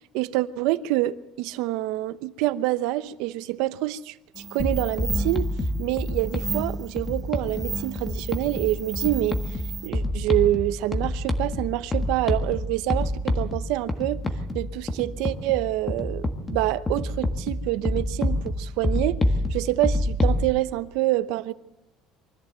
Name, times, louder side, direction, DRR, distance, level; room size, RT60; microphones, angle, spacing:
voice 1, 0.1-5.5 5.8-9.6 9.8-14.2 14.5-19.2 19.5-21.5, right 16 dB, 75° right, 0.9 m, -26 dB
sound 1, 4.3-9.9, right 4 dB, 15° right, 1.4 m, -35 dB
sound 2, 4.6-20.4, left 1 dB, 15° left, 1.6 m, -28 dB
24.0 x 14.5 x 8.1 m
cardioid pair, 165°, 0 cm